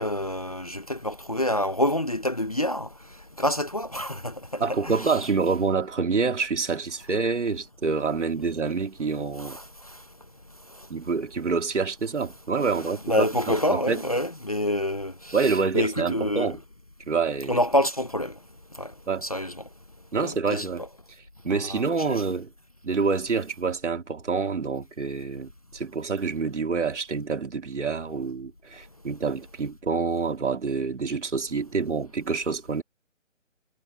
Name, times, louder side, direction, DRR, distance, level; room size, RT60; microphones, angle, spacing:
voice 1, 0.0-2.9 3.4-5.2 9.4-10.0 13.1-15.4 15.7-16.5 17.5-18.3 18.8-18.9 19.2-19.6 20.2-20.7 21.5-22.2, left 1 dB, 30° left, 0.7 m, -27 dB
voice 2, 4.6-9.6 10.9-14.0 15.3-16.6 17.1-17.6 19.1-19.2 20.1-20.8 21.4-22.5 22.8-32.8, right 4 dB, 65° right, 3.2 m, -27 dB
hypercardioid pair, 170°, 39 cm